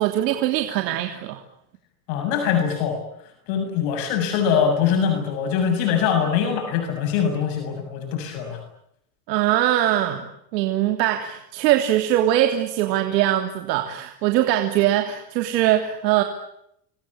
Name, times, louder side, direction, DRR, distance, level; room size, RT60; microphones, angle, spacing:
voice 1, 0.0-1.4 9.3-16.2, right 13 dB, 85° right, 5 dB, 3.3 m, -22 dB
voice 2, 2.1-3.0 3.5-8.6, left 7 dB, 65° left, 5 dB, 7.3 m, -23 dB
28.5 x 23.0 x 8.7 m, 0.75 s
supercardioid pair, 130°, 48 cm